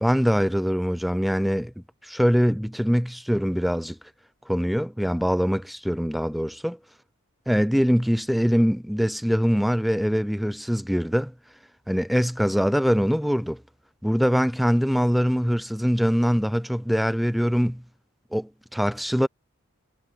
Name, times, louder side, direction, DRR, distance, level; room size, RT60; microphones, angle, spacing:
voice 1, 0.0-1.7 2.0-4.0 4.5-6.8 7.5-11.3 11.9-13.6 14.0-17.8 18.3-19.3, equal, ahead, 0.3 m, -23 dB
head